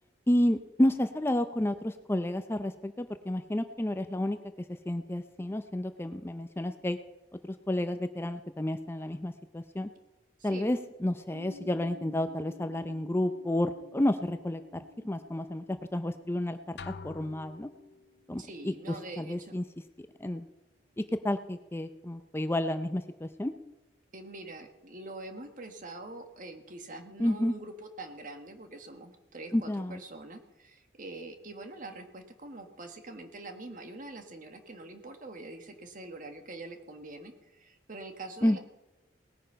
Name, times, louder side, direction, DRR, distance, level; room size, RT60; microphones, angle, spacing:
voice 1, 0.3-4.4 4.9-7.0 7.4-9.9 10.4-16.8 17.0-17.7 18.3-18.7 19.2-19.6 20.0-20.4 21.0-23.5 27.2-27.5 29.5-30.0 38.4-38.6, left 1 dB, 15° left, 9 dB, 0.5 m, -30 dB
voice 2, 10.4-10.8 18.4-19.6 24.1-38.6, right 2 dB, 50° right, 6 dB, 1.6 m, -44 dB
sound 1, 11.3-19.1, left 4 dB, 90° right, 1.1 m, -55 dB
sound 2, 16.8-18.2, left 4 dB, 70° left, 0.6 m, -46 dB
19.0 x 9.2 x 5.6 m, 1.0 s
head